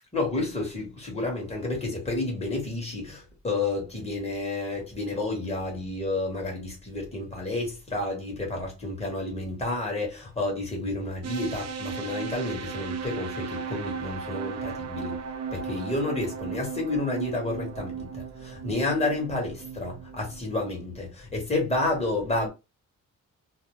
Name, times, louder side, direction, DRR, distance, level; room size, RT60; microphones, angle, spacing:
voice 1, 0.1-15.2 15.5-22.5, left 2 dB, 20° left, 1.2 m, -30 dB
sound 1, 11.2-21.1, right 6 dB, 50° right, 0.5 m, -36 dB
2.6 x 2.0 x 3.0 m
wide cardioid pair, 145°, 35 cm